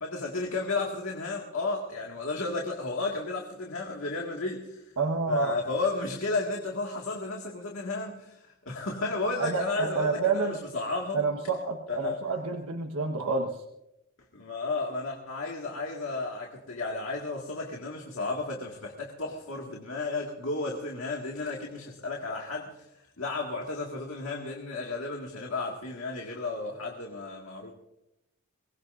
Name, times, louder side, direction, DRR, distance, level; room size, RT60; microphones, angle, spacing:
voice 1, 0.0-4.8 5.3-11.2 11.9-12.2 14.3-22.9 23.2-27.7, left 3 dB, 65° left, -1 dB, 2.0 m, -33 dB
voice 2, 5.0-5.5 9.4-10.6 11.1-13.6, right 4 dB, 90° right, 2 dB, 1.3 m, -29 dB
23.5 x 19.5 x 2.6 m, 0.87 s
head